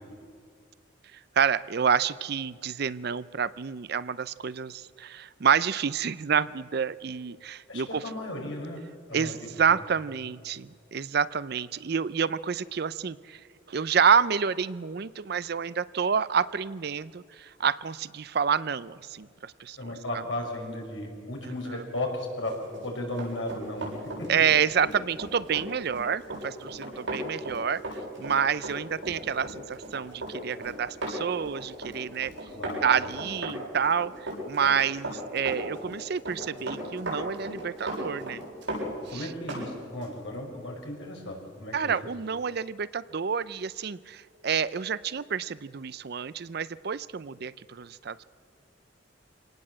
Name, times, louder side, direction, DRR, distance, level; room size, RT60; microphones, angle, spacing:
voice 1, 1.4-8.0 9.1-13.4 13.7-20.2 21.4-21.9 24.3-27.8 28.2-32.3 32.8-38.5 39.1-39.3 41.7-48.2, right 7 dB, 55° right, 17 dB, 0.5 m, -28 dB
voice 2, 7.7-8.8 9.1-9.8 19.8-22.6 22.8-23.8 24.2-24.3 32.5-32.9 39.1-41.9, left 1 dB, 75° left, 1 dB, 5.2 m, -35 dB
Run, 22.6-39.7 40.0-40.2, right 1 dB, 80° right, 7.8 m, -36 dB
25.0 x 18.5 x 7.6 m, 2.1 s
head